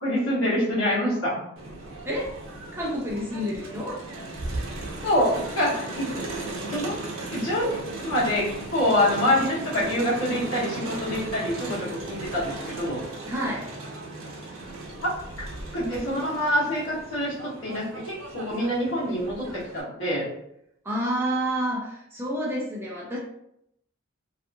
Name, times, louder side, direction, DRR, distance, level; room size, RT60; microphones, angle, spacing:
voice 1, 0.0-1.4 5.0-6.1 6.6-7.0 7.3-13.0 15.0-15.1 15.4-15.5 15.7-20.3, left 1 dB, 65° left, -6 dB, 1.1 m, -26 dB
Crowd, 1.6-19.8, right 2 dB, 70° right, 0.6 m, -37 dB
voice 2, 2.7-4.0 4.5-4.6 13.3-13.7 20.8-23.2, equal, 10° right, -4 dB, 0.4 m, -29 dB
2.6 x 2.4 x 2.5 m, 0.76 s
head